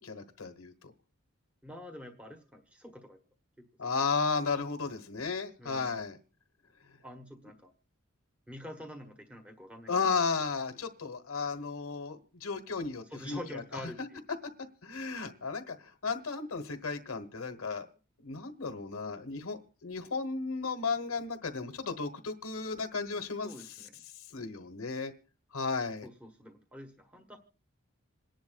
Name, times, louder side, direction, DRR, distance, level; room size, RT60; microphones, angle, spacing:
voice 1, 0.0-0.7 3.8-6.2 9.9-14.1 14.8-17.9 18.2-23.7 24.3-25.1 25.5-26.1, left 4 dB, 90° left, 7 dB, 1.2 m, -34 dB
voice 2, 1.6-3.2 3.6-3.7 5.6-6.0 7.0-7.7 8.5-10.2 13.1-14.2 23.4-24.0 26.0-27.4, left 1 dB, 5° right, 3 dB, 1.1 m, -46 dB
27.0 x 10.5 x 2.3 m, 0.36 s
head